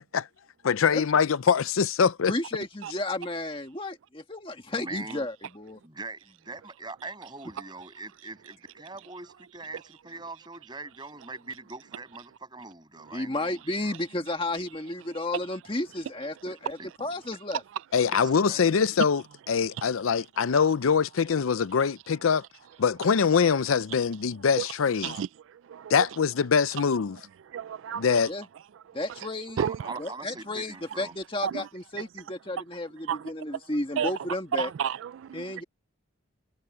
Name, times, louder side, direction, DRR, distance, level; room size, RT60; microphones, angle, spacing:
voice 1, 0.6-2.3 17.9-22.4 22.8-25.2 25.9-27.2 27.9-28.3, left 6 dB, 85° left, 0.5 m, -23 dB
voice 2, 2.3-5.8 13.1-17.6 28.3-28.4 28.9-29.6 30.0-34.7 35.3-35.6, left 2 dB, 25° left, 1.8 m, -33 dB
voice 3, 4.7-5.3 5.8-14.0 16.4-17.1 18.1-18.6 29.6-31.1, right 3 dB, 20° right, 6.9 m, -42 dB
voice 4, 27.5-28.0 29.6-30.0 31.4-31.6 33.1-33.2 34.0-34.1 34.6-35.5, right 8 dB, 70° right, 0.3 m, -31 dB
head